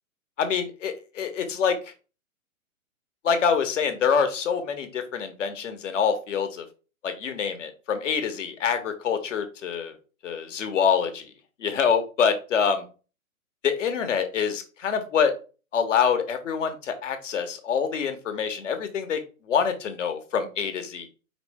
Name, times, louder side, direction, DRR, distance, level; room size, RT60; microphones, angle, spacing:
voice 1, 0.4-1.8 3.2-6.6 7.0-9.9 10.2-11.2 11.6-12.8 13.6-15.3 15.7-19.2 19.5-21.1, left 7 dB, 60° left, 8 dB, 1.2 m, -25 dB
4.8 x 3.1 x 3.4 m, 0.34 s
figure-of-eight pair, 120°, 43 cm